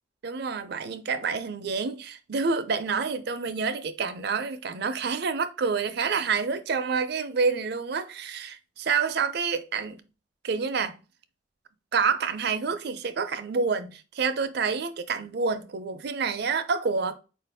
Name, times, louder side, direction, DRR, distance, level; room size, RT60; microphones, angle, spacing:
voice 1, 0.2-10.0 10.4-11.0 11.9-17.1, right 5 dB, 65° right, 0.5 m, -28 dB
4.5 x 2.5 x 3.4 m
head